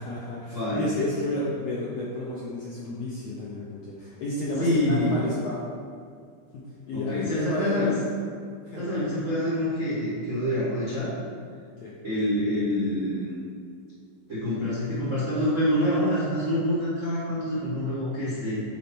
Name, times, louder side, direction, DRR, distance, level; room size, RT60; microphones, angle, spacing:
voice 1, 0.0-5.7 6.5-8.0 8.6-8.9 11.8-11.9, left 1 dB, 70° left, -6 dB, 1.6 m, -32 dB
voice 2, 0.5-0.9 4.6-5.2 6.9-7.9 8.7-11.1 12.0-13.3 14.3-18.6, left 1 dB, 45° right, -9 dB, 1.0 m, -26 dB
8.7 x 4.2 x 4.4 m, 2.2 s
omnidirectional pair, 3.9 m